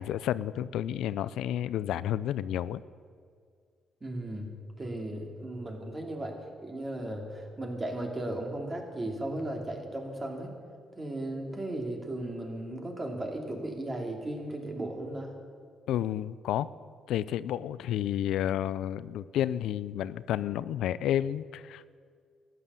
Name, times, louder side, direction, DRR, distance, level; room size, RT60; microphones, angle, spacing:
voice 1, 0.0-2.8 15.9-16.7 17.1-22.0, left 11 dB, 85° left, 16 dB, 0.4 m, -31 dB
voice 2, 4.0-6.4 6.6-10.5 11.0-15.3, right 1 dB, 25° right, 2 dB, 2.6 m, -36 dB
14.0 x 9.7 x 6.8 m, 2.1 s
cardioid pair, 90°, 0 cm